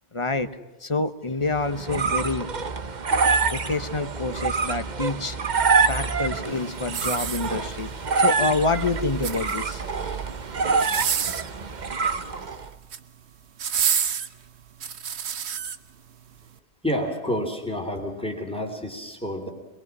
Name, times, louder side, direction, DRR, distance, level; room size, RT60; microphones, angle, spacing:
voice 1, 0.1-0.5 0.8-2.5 3.5-5.4 5.9-7.9 8.2-9.8, left 3 dB, 30° left, 10 dB, 1.0 m, -27 dB
sound 1, 1.5-12.7, right 4 dB, 45° right, 1.0 m, -26 dB
sound 2, 6.9-7.9 9.0-9.8 10.7-11.6 12.6-13.1 13.6-15.8 16.4-16.5, right 7 dB, 85° right, 1.2 m, -28 dB
voice 2, 16.8-19.5, equal, 5° left, 3 dB, 3.3 m, -29 dB
23.0 x 22.5 x 6.1 m, 1.2 s
omnidirectional pair, 1.1 m